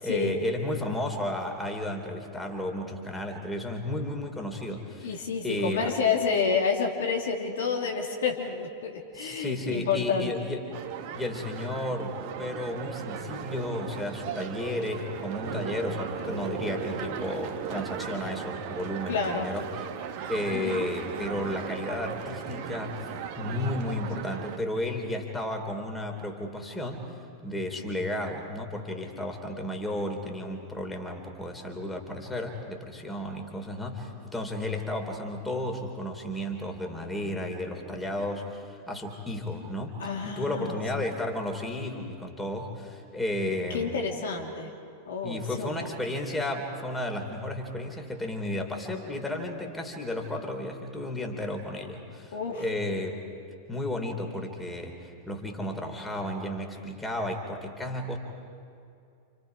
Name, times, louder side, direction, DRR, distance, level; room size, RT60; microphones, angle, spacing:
voice 1, 0.0-5.2 5.4-5.9 9.1-10.6 11.1-19.9 20.3-23.1 23.4-27.1 27.4-44.0 45.2-53.2 53.7-58.2, left 1 dB, 10° left, 2 dB, 3.8 m, -33 dB
voice 2, 5.0-10.3 19.1-19.4 20.5-20.8 40.0-40.7 43.7-44.7 45.1-45.8 52.3-52.6, left 5 dB, 60° left, 1 dB, 3.0 m, -29 dB
sound 1, 10.7-24.6, right 7 dB, 45° right, 1.7 m, -37 dB
29.5 x 29.0 x 4.9 m, 2.5 s
figure-of-eight pair, 90°, 0 cm